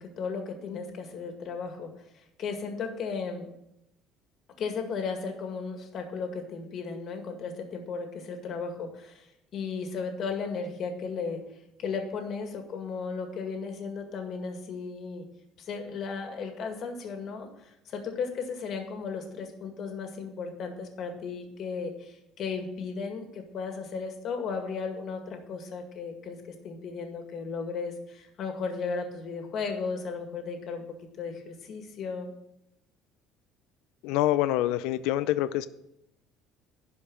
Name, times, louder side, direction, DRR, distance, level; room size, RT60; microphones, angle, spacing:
voice 1, 0.0-1.9 2.4-3.5 4.6-11.4 11.8-15.2 15.6-30.8 31.2-32.3, left 5 dB, 45° left, 4 dB, 2.0 m, -35 dB
voice 2, 34.0-35.7, left 14 dB, 80° left, 15 dB, 0.5 m, -26 dB
11.5 x 5.2 x 7.2 m, 0.83 s
cardioid pair, 145°, 0 cm